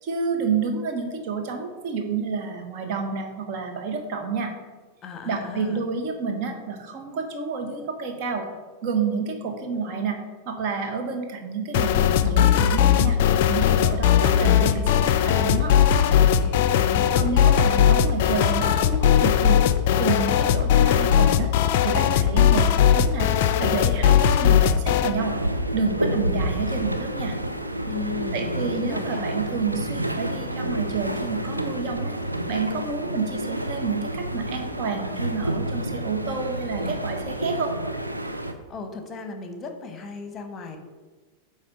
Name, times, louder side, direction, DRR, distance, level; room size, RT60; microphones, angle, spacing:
voice 1, 0.0-4.5 5.2-8.5 8.8-10.2 10.4-13.2 13.5-15.7 17.1-19.6 20.0-21.5 21.8-23.3 23.6-25.3 25.7-27.3 28.3-32.2 32.5-37.7, right 5 dB, 45° right, 4 dB, 1.3 m, -29 dB
voice 2, 5.0-5.8 15.8-17.3 27.8-29.3 38.7-40.8, left 4 dB, 25° left, 6 dB, 1.1 m, -36 dB
sound 1, 11.7-25.2, left 9 dB, 50° left, 0.4 m, -19 dB
sound 2, 25.1-38.5, right 1 dB, 85° right, 0.6 m, -29 dB
8.9 x 3.3 x 5.8 m, 1.3 s
figure-of-eight pair, 90°, 0 cm